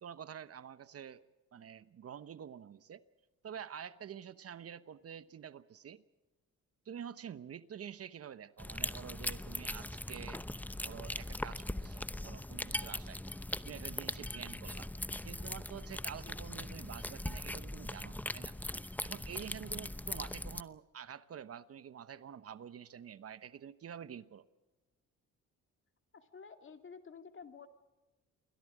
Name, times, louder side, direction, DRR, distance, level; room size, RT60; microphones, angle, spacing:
voice 1, 0.0-1.3 1.5-3.0 3.4-6.0 6.9-10.4 10.8-13.2 13.7-14.9 15.2-18.6 19.0-24.4, right 8 dB, 50° right, 1.0 m, -48 dB
sound 1, 8.6-20.6, left 1 dB, 5° left, 0.8 m, -40 dB
voice 2, 26.1-27.7, left 5 dB, 40° left, 2.3 m, -52 dB
28.5 x 22.0 x 5.0 m
cardioid pair, 90°, 30 cm